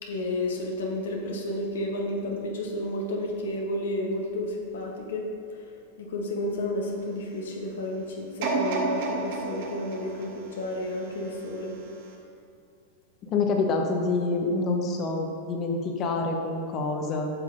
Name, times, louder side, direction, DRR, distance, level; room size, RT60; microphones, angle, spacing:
voice 1, 0.0-5.6 6.0-11.7, left 1 dB, 85° left, 0 dB, 0.9 m, -31 dB
sound 1, 8.4-11.5 12.0-12.1, right 3 dB, 65° right, 1.2 m, -31 dB
voice 2, 13.2-17.3, left 3 dB, 35° left, 2 dB, 0.9 m, -27 dB
7.7 x 5.8 x 2.6 m, 2.4 s
hypercardioid pair, 120°, 0 cm